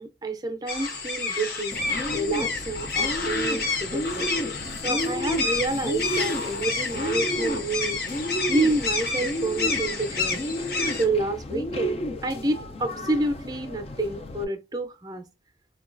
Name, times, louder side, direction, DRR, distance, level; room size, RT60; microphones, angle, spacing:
voice 1, 0.0-1.8 2.1-4.3 4.8-8.0 8.5-10.4 11.0-15.2, right 2 dB, 20° right, 0.5 m, -28 dB
sound 1, 0.7-11.0, left 4 dB, 55° left, 0.8 m, -29 dB
Bird, 1.7-14.4, equal, 30° left, 0.3 m, -32 dB
4.7 x 2.3 x 2.4 m
head